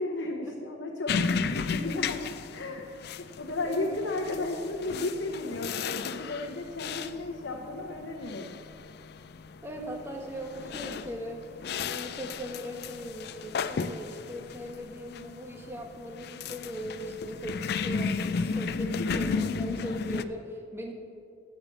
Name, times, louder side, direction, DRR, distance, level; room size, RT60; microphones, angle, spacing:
voice 1, 0.0-2.9 3.4-8.6 18.8-19.4, left 2 dB, 80° left, 1 dB, 0.9 m, -34 dB
sound 1, 1.1-20.2, left 5 dB, 55° left, 0.4 m, -34 dB
voice 2, 3.6-3.9 9.6-20.9, equal, 15° right, 1 dB, 1.4 m, -39 dB
14.0 x 5.8 x 6.8 m, 2.4 s
head